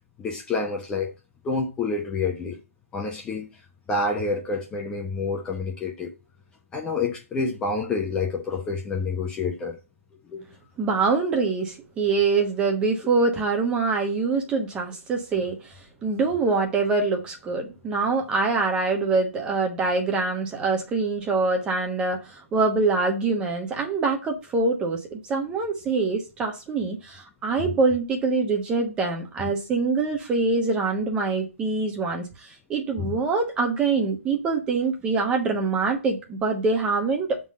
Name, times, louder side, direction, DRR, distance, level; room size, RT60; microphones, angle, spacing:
voice 1, 0.2-1.1 1.4-2.6 2.9-3.5 3.9-6.1 6.7-9.8 10.3-10.4 15.4-15.5 27.6-27.8 33.0-33.2, left 3 dB, 10° left, 0.9 m, -28 dB
voice 2, 10.8-15.7 16.0-37.4, right 4 dB, 15° right, 1.2 m, -24 dB
7.0 x 4.0 x 5.3 m
hypercardioid pair, 150°, 8 cm